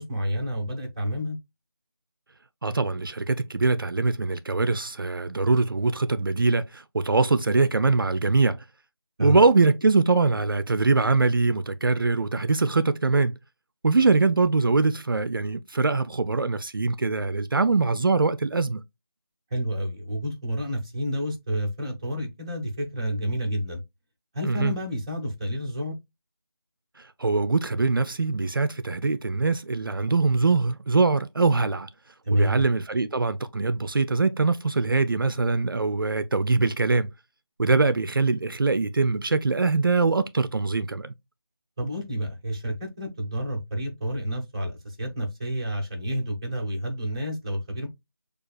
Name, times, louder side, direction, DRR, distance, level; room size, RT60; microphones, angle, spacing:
voice 1, 0.0-1.4 9.2-9.4 19.5-23.8 24.3-25.9 32.2-32.6 41.8-47.9, equal, 15° right, 0.5 m, -29 dB
voice 2, 2.6-8.6 9.2-13.4 13.8-18.8 24.4-24.7 27.2-31.9 32.3-37.1 37.6-41.1, right 3 dB, 60° right, 0.4 m, -23 dB
6.3 x 2.3 x 2.3 m
figure-of-eight pair, 165°, 13 cm